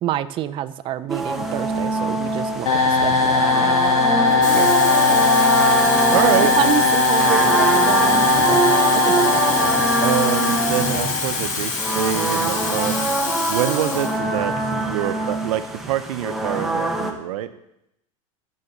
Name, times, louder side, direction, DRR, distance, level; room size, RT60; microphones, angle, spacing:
voice 1, 0.0-3.8 6.6-8.6 9.1-9.8, right 12 dB, 30° right, 12 dB, 0.4 m, -28 dB
sound 1, 1.1-17.1, right 2 dB, ahead, 0.9 m, -24 dB
sound 2, 2.6-11.6, left 3 dB, 70° left, 2.1 m, -19 dB
Water tap faucet / Fill (with liquid), 4.3-14.2 14.6-14.8, left 4 dB, 45° left, 1.6 m, -27 dB
voice 2, 4.4-4.7 6.1-6.5 10.0-13.0 13.5-17.5, right 12 dB, 85° right, 11 dB, 0.7 m, -25 dB
7.2 x 6.6 x 7.2 m, 0.84 s
supercardioid pair, 145°, 18 cm